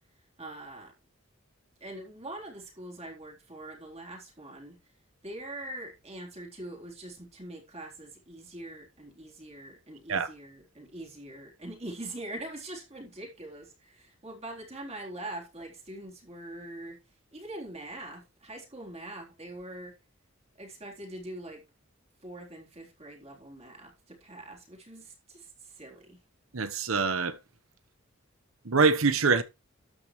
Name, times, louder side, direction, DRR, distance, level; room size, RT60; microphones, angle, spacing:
voice 1, 0.4-0.9 1.8-4.8 5.2-17.0 17.3-19.9 20.6-21.6 22.2-26.2, right 1 dB, 30° right, 3.8 m, -43 dB
voice 2, 26.5-27.4 28.6-29.4, right 4 dB, 90° right, 1.1 m, -24 dB
12.5 x 9.0 x 3.2 m
head